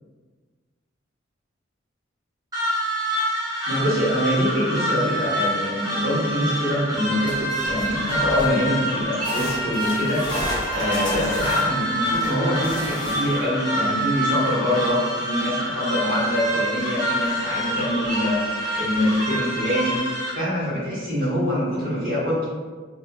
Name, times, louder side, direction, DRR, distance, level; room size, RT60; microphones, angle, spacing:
sound 1, 2.5-20.3, equal, 20° right, 0.6 m, -27 dB
voice 1, 3.7-10.3 10.7-18.4 18.8-20.0 20.3-22.5, equal, 50° right, -8 dB, 1.0 m, -24 dB
sound 2, 7.3-8.7 9.2-13.5 16.8-16.9 17.2-17.3 18.1-18.2, left 1 dB, 20° left, 0.4 m, -33 dB
2.5 x 2.3 x 2.2 m, 1.4 s
head